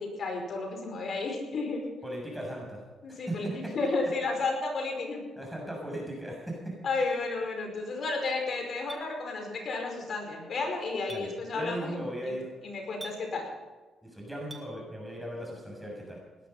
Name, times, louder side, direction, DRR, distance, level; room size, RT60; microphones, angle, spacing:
voice 1, 0.0-1.8 3.0-5.2 6.8-12.4 12.6-13.5, left 3 dB, 50° left, 2 dB, 5.1 m, -32 dB
voice 2, 2.0-2.8 3.1-3.7 5.4-6.7 11.1-12.5 14.1-16.2, right 1 dB, ahead, -2 dB, 7.0 m, -37 dB
Chink clink, 8.9-9.0 11.1-11.2 13.0-13.2 14.5-14.7, right 3 dB, 20° right, 2.1 m, -42 dB
19.0 x 12.0 x 5.7 m, 1.3 s
cardioid pair, 90°, 0 cm